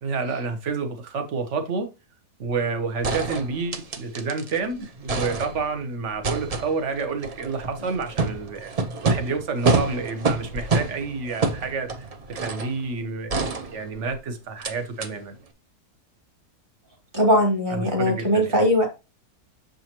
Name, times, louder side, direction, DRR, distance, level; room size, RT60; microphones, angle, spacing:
voice 1, 0.0-1.9 2.4-8.7 9.0-15.3 17.7-18.5, right 4 dB, 50° right, 1.4 m, -29 dB
sound 1, 2.6-2.7 3.0-4.6 4.9-5.8 6.2-12.8 13.3-14.2 14.6-14.7 15.0-15.1, right 3 dB, 75° right, 0.3 m, -27 dB
voice 2, 17.1-18.9, equal, 30° right, 2.8 m, -20 dB
6.8 x 5.5 x 3.0 m
omnidirectional pair, 1.7 m